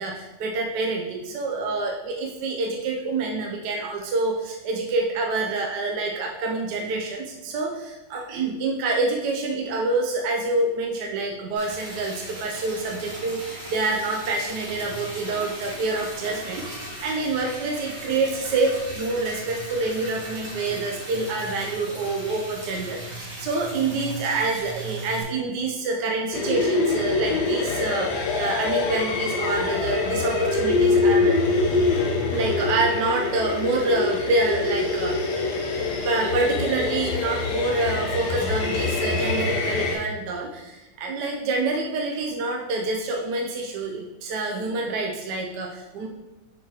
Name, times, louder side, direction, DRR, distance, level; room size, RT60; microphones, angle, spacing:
voice 1, 0.0-31.4 32.3-35.3 36.0-46.1, right 3 dB, 70° right, 0 dB, 1.2 m, -27 dB
Liquid, 11.6-25.2, right 1 dB, 35° right, 2.2 m, -37 dB
sound 1, 26.3-40.0, left 3 dB, 65° left, 1.4 m, -24 dB
6.9 x 4.7 x 2.9 m, 1.1 s
omnidirectional pair, 2.0 m